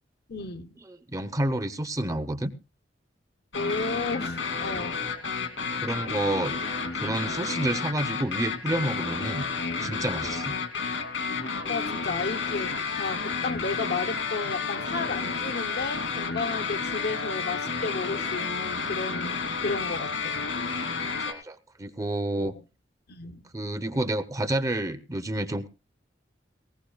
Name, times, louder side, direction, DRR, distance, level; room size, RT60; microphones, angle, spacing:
voice 1, 0.3-0.7 3.5-5.0 11.3-20.4 22.4-22.5 23.1-23.4, left 3 dB, 60° left, 0.8 m, -33 dB
voice 2, 1.1-2.5 5.8-6.5 6.9-9.5 9.8-10.6 21.2-22.5 23.5-25.7, right 1 dB, 20° right, 0.8 m, -29 dB
sound 1, 3.5-21.3, left 5 dB, 85° left, 2.7 m, -31 dB
19.5 x 18.0 x 2.3 m
head